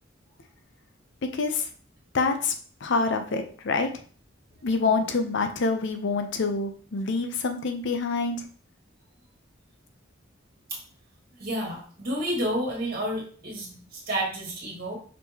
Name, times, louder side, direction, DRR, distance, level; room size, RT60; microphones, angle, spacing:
voice 1, 1.3-1.7 2.1-2.5 2.8-3.9 4.6-8.5, left 4 dB, 60° left, 6 dB, 0.6 m, -26 dB
voice 2, 11.4-15.0, right 1 dB, 50° right, -2 dB, 1.8 m, -30 dB
5.1 x 3.6 x 2.8 m, 0.42 s
head